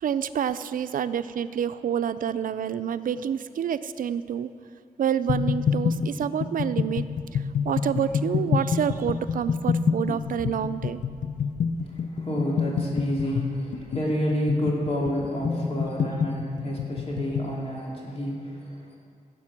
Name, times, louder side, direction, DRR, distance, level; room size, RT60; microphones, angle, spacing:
voice 1, 0.0-4.5 5.0-7.1 7.3-11.0, right 8 dB, 75° right, 13 dB, 0.5 m, -28 dB
sound 1, 5.3-17.5, left 6 dB, 65° left, 0.6 m, -27 dB
voice 2, 11.9-19.0, equal, 45° left, -3 dB, 2.5 m, -29 dB
16.0 x 7.5 x 5.9 m, 2.3 s
wide cardioid pair, 115°, 14 cm